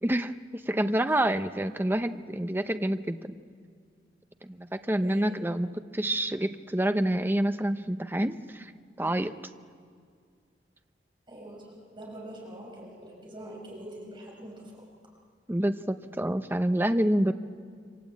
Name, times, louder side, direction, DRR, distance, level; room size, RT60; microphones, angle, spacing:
voice 1, 0.0-3.3 4.4-8.7 9.0-9.4 15.5-17.3, right 1 dB, 10° right, 9 dB, 0.7 m, -28 dB
voice 2, 4.9-5.4 11.3-14.8, right 1 dB, 30° right, -2 dB, 5.7 m, -44 dB
27.0 x 25.0 x 8.4 m, 2.1 s
head